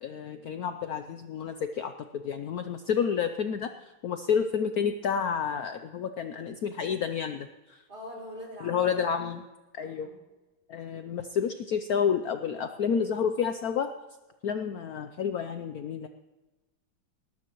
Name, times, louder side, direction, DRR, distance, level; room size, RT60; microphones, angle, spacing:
voice 1, 0.0-3.7 4.0-7.8 8.6-9.4 9.7-10.1 10.7-13.9 14.4-16.1, left 7 dB, 85° left, 8 dB, 0.8 m, -30 dB
voice 2, 7.9-8.9 9.8-10.1 10.9-11.1, equal, 45° right, -3 dB, 5.2 m, -43 dB
20.0 x 19.0 x 3.0 m, 1.1 s
omnidirectional pair, 2.3 m